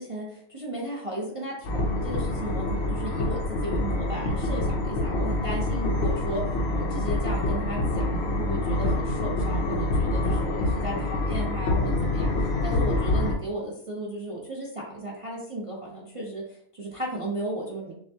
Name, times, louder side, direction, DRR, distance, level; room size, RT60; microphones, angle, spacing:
voice 1, 0.0-6.4 6.7-17.9, right 1 dB, 30° right, -4 dB, 0.6 m, -35 dB
sound 1, 1.6-13.3, left 2 dB, 55° left, 0.9 m, -26 dB
6.7 x 2.3 x 2.7 m, 0.66 s
omnidirectional pair, 1.5 m